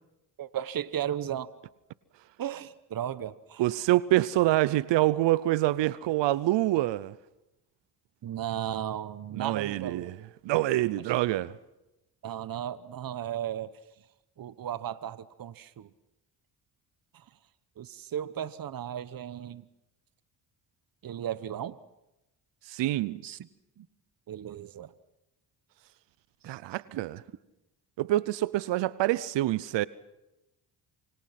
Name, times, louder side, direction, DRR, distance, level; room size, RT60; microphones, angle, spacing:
voice 1, 0.4-1.5 2.4-3.6 8.2-10.1 12.2-13.8 14.4-15.9 17.1-17.2 17.8-19.7 21.0-21.8 23.2-23.5 23.8-23.9 24.3-24.9 26.4-26.6, right 10 dB, 50° right, 1.1 m, -35 dB
voice 2, 3.6-7.1 9.4-10.1 10.4-11.5 22.7-23.2 26.4-27.2 28.0-29.9, right 16 dB, 80° right, 0.8 m, -26 dB
28.0 x 24.5 x 5.9 m
cardioid pair, 75°, 43 cm